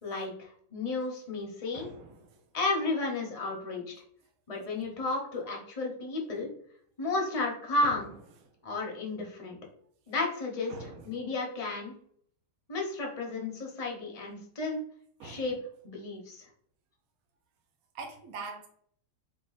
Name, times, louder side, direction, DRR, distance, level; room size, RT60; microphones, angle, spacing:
voice 1, 0.0-1.9 2.5-3.9 4.5-6.5 7.0-8.1 8.6-9.6 10.1-10.7 11.0-11.9 12.7-14.8 15.2-15.5 15.8-16.4, left 2 dB, 30° left, 0 dB, 0.7 m, -33 dB
voice 2, 1.7-2.4 7.8-8.0 10.7-11.2 15.2-15.5 17.9-18.7, right 4 dB, 60° right, 3 dB, 1.0 m, -43 dB
3.6 x 3.0 x 3.9 m, 0.62 s
omnidirectional pair, 1.9 m